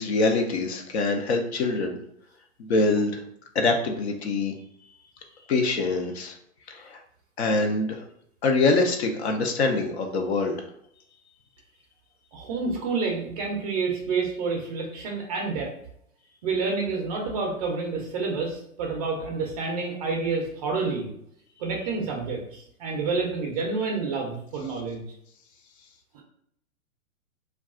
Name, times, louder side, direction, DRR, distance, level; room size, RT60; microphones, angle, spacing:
voice 1, 0.0-2.0 2.6-3.2 3.5-4.5 5.5-6.4 6.7-7.0 7.4-8.0 8.4-10.6, left 3 dB, 50° left, 3 dB, 0.5 m, -24 dB
voice 2, 12.3-15.7 16.4-21.1 21.6-25.0 26.1-26.2, right 4 dB, 30° right, 0 dB, 0.5 m, -29 dB
2.3 x 2.2 x 3.6 m, 0.71 s
hypercardioid pair, 130°, 43 cm